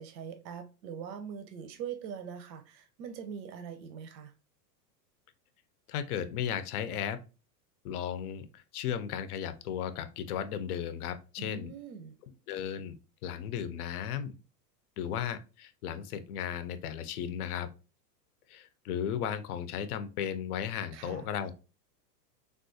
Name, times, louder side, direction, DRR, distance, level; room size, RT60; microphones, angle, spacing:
voice 1, 0.0-4.3 11.4-12.1 20.9-21.3, right 7 dB, 85° right, 0.7 m, -42 dB
voice 2, 5.9-7.2 7.8-11.7 12.5-13.0 13.2-14.4 15.0-17.7 18.5-21.5, left 9 dB, 65° left, 0.5 m, -35 dB
3.5 x 2.3 x 2.5 m
supercardioid pair, 165°, 49 cm